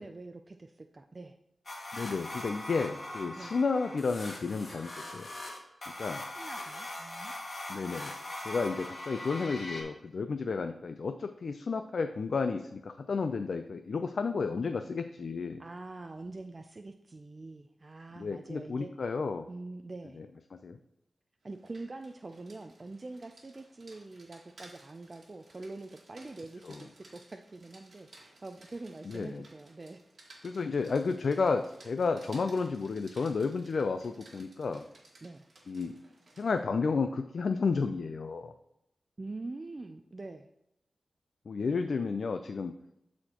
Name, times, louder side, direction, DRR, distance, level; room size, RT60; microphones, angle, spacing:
voice 1, 0.0-1.4 3.4-3.6 6.4-7.3 15.6-18.9 19.5-20.2 21.4-30.0 35.2-35.4 39.2-40.5, right 2 dB, 35° right, 5 dB, 0.4 m, -44 dB
sound 1, 1.7-9.8, left 1 dB, 40° left, 2.0 m, -41 dB
voice 2, 1.9-5.3 6.0-6.2 7.7-8.1 8.4-15.6 18.2-19.5 20.2-20.3 20.5-20.8 26.6-26.8 29.1-29.4 30.4-34.9 35.7-36.0 36.4-38.5 41.5-42.7, left 4 dB, 65° left, 7 dB, 0.4 m, -32 dB
Rain, 21.5-36.6, right 2 dB, 55° right, 1.8 m, -58 dB
12.5 x 4.2 x 2.9 m, 0.82 s
wide cardioid pair, 115°, 0 cm